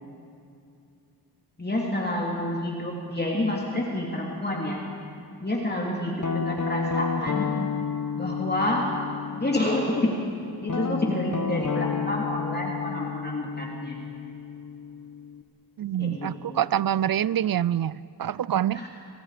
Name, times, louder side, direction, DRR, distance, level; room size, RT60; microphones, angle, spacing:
voice 1, 1.6-4.8 5.4-7.6 8.2-8.9 9.4-10.2 10.6-14.0 16.0-16.6 18.7-18.9, left 1 dB, 25° left, -2 dB, 3.1 m, -28 dB
Guitar, 6.2-10.0 10.7-15.4, left 5 dB, 50° left, 1.3 m, -31 dB
voice 2, 15.8-18.9, right 10 dB, 60° right, 20 dB, 0.5 m, -26 dB
29.5 x 26.5 x 5.1 m, 2.6 s
wide cardioid pair, 80°, 39 cm